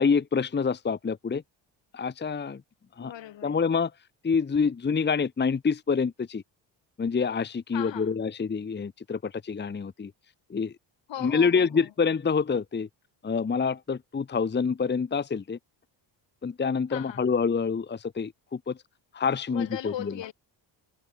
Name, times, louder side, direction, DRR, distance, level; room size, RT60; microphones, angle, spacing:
voice 1, 0.0-1.4 1.9-2.6 3.0-3.1 3.4-3.9 4.2-6.4 7.0-10.1 10.5-10.7 11.2-12.9 13.2-15.6 16.4-18.8 19.1-20.1, left 5 dB, 20° left, 1.0 m, -27 dB
voice 2, 3.0-3.6 7.7-8.1 11.1-11.9 16.9-17.3 19.5-20.3, left 12 dB, 65° left, 2.9 m, -38 dB
cardioid pair, 105°, 47 cm